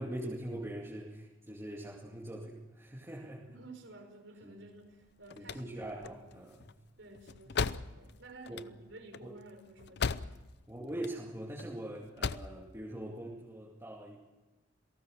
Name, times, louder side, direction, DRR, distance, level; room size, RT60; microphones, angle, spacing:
voice 1, 0.0-3.5 4.4-4.6 5.4-6.7 7.5-7.8 8.5-8.7 9.2-9.3 10.7-14.2, right 1 dB, 15° right, -3 dB, 2.4 m, -42 dB
voice 2, 3.5-6.2 7.0-10.4, right 2 dB, 75° right, 5 dB, 5.1 m, -53 dB
sound 1, 5.0-10.6 10.9-11.6 12.0-12.6, left 5 dB, 60° left, 0.7 m, -37 dB
28.0 x 18.0 x 6.5 m, 1.2 s
head